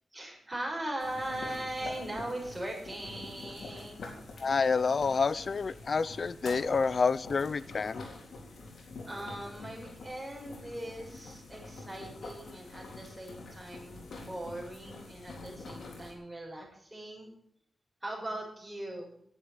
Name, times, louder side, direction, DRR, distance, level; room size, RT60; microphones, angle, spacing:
voice 1, 0.1-4.1 8.8-17.3 18.0-19.1, right 1 dB, 15° right, -1 dB, 6.9 m, -40 dB
sound 1, 1.0-16.1, left 3 dB, 85° left, 3.9 m, -46 dB
voice 2, 4.4-8.1, left 5 dB, 60° left, 18 dB, 0.6 m, -28 dB
11.0 x 10.5 x 8.6 m, 0.66 s
wide cardioid pair, 80°, 0 cm